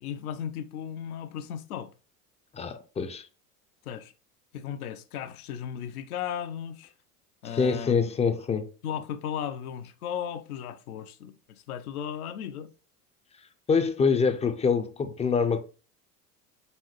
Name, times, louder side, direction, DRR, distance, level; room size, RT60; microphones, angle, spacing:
voice 1, 0.0-1.9 3.8-4.1 4.5-6.9 7.4-8.0 8.8-12.7, left 9 dB, 80° left, 0.6 m, -36 dB
voice 2, 2.5-3.3 7.5-8.7 13.7-15.6, left 5 dB, 15° left, 0.4 m, -25 dB
4.1 x 3.7 x 3.1 m
hypercardioid pair, 75°, 44 cm